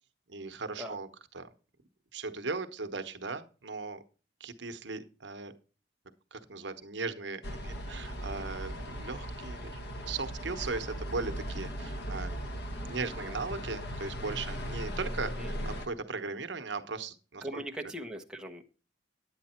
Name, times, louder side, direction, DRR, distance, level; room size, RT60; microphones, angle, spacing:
voice 1, 0.3-1.1 1.3-1.5 2.1-4.0 4.4-5.5 6.3-9.8 10.0-12.5 12.8-17.6, right 4 dB, 70° right, 8 dB, 1.0 m, -38 dB
sound 1, 7.4-15.9, equal, 60° left, 1.6 m, -38 dB
voice 2, 17.4-18.6, right 1 dB, 5° right, 1 dB, 0.9 m, -40 dB
9.9 x 8.7 x 4.4 m, 0.35 s
head